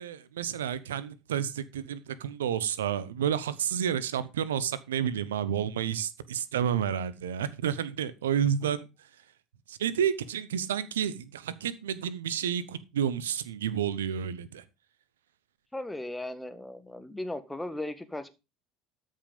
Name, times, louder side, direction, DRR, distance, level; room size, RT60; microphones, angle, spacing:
voice 1, 0.0-9.1 9.7-14.6, right 9 dB, 75° right, 0.9 m, -30 dB
voice 2, 15.7-18.3, left 1 dB, 10° left, 1.7 m, -37 dB
13.0 x 5.7 x 5.2 m
figure-of-eight pair, 65°, 0 cm